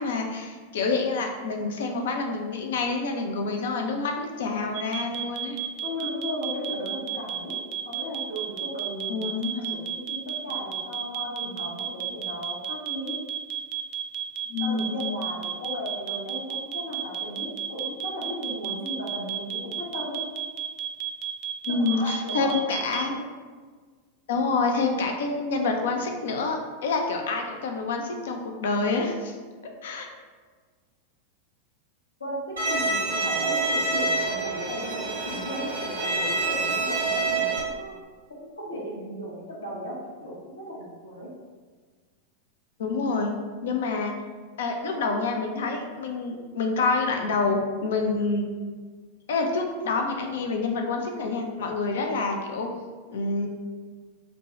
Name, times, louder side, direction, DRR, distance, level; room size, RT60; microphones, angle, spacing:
voice 1, 0.0-5.6 9.1-9.7 14.5-15.1 21.7-23.1 24.3-29.3 29.6-30.1 42.8-43.3 43.6-44.2 44.6-48.5 49.3-52.7 53.1-53.5, left 3 dB, 60° left, 3 dB, 0.5 m, -27 dB
sound 1, 4.7-23.0, right 11 dB, 45° right, 0.3 m, -32 dB
voice 2, 5.8-7.6 7.8-9.3 9.6-13.2 14.6-20.2 21.7-23.2 32.2-38.0 38.3-41.3, equal, 75° left, -6 dB, 1.1 m, -36 dB
Bowed string instrument, 32.6-37.6, right 3 dB, 70° right, 0.9 m, -27 dB
5.1 x 2.3 x 3.1 m, 1.5 s
figure-of-eight pair, 90°, 0 cm